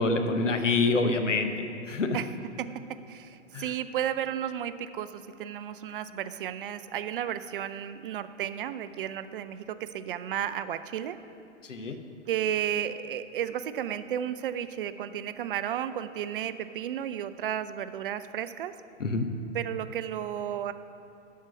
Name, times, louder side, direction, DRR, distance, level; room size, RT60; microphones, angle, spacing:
voice 1, 0.0-2.2 3.5-3.6 11.6-12.0 19.0-19.3, left 3 dB, 75° left, 7 dB, 0.9 m, -26 dB
voice 2, 3.1-11.2 11.8-12.0 12.3-18.7 19.5-20.7, right 10 dB, 45° right, 12 dB, 0.4 m, -33 dB
11.5 x 4.6 x 6.2 m, 2.6 s
figure-of-eight pair, 105°, 37 cm